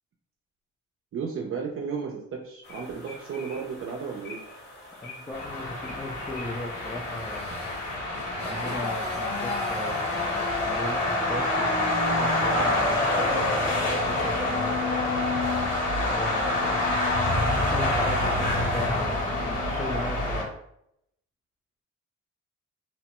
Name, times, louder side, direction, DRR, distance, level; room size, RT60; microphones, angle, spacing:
voice 1, 1.1-4.4, right 6 dB, 45° right, 0 dB, 0.5 m, -33 dB
sound 1, 2.6-8.0, left 2 dB, 35° left, 1.1 m, -46 dB
voice 2, 5.0-7.7 8.4-14.8 16.0-17.0 17.5-20.5, left 2 dB, 10° left, -2 dB, 0.4 m, -37 dB
sound 2, 5.3-20.4, left 1 dB, 55° left, 1.2 m, -26 dB
Motorcycle, 6.5-12.6, left 2 dB, 85° left, 0.8 m, -39 dB
2.9 x 2.1 x 2.9 m, 0.75 s
cardioid pair, 90°, 30 cm